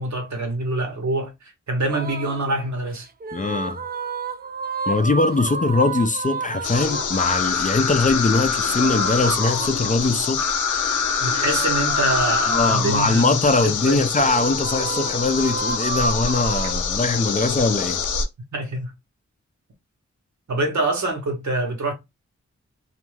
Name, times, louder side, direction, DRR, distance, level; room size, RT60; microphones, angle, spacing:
voice 1, 0.0-1.3 1.7-3.1 11.2-14.0 18.5-18.9 20.5-21.9, right 2 dB, 70° right, 0.9 m, -25 dB
sound 1, 1.9-2.5 3.2-7.4 8.7-10.3 11.4-13.1 14.2-16.7, right 4 dB, 30° right, 0.4 m, -31 dB
voice 2, 3.3-3.8 4.9-10.5 12.5-18.0, left 3 dB, 25° left, 0.4 m, -21 dB
sound 2, 6.6-18.3, left 6 dB, 85° left, 0.5 m, -25 dB
2.4 x 2.2 x 3.1 m
cardioid pair, 45°, 30 cm